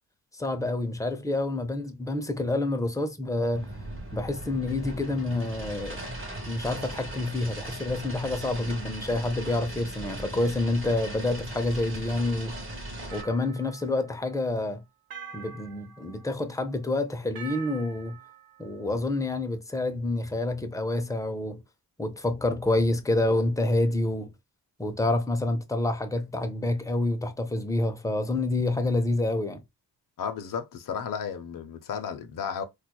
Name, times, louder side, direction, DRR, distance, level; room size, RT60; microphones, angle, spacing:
voice 1, 0.3-3.7 4.1-6.0 6.5-12.5 13.1-14.8 15.3-18.2 18.6-21.6 22.0-24.3 24.8-29.6, left 2 dB, 10° left, 0.5 m, -28 dB
sound 1, 3.5-13.2, right 1 dB, 30° right, 1.3 m, -38 dB
sound 2, 13.1-14.4 15.1-16.6 17.4-18.9, right 7 dB, 65° right, 0.7 m, -45 dB
voice 2, 30.2-32.6, left 7 dB, 55° left, 0.6 m, -33 dB
4.3 x 2.4 x 2.2 m
wide cardioid pair, 110°, 40 cm